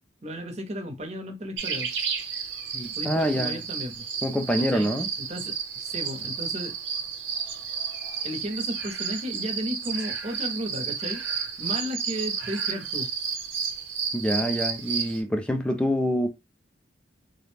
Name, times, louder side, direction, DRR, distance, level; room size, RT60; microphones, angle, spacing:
voice 1, 0.2-1.9 3.0-4.1 4.7-4.9 5.2-6.8 8.2-11.2 11.6-13.1, equal, 35° right, 0.6 m, -34 dB
sound 1, 1.6-15.2, right 6 dB, 80° right, 0.8 m, -32 dB
voice 2, 2.7-3.6 4.2-5.1 14.1-16.3, equal, 5° left, 0.3 m, -26 dB
2.4 x 2.0 x 3.1 m
head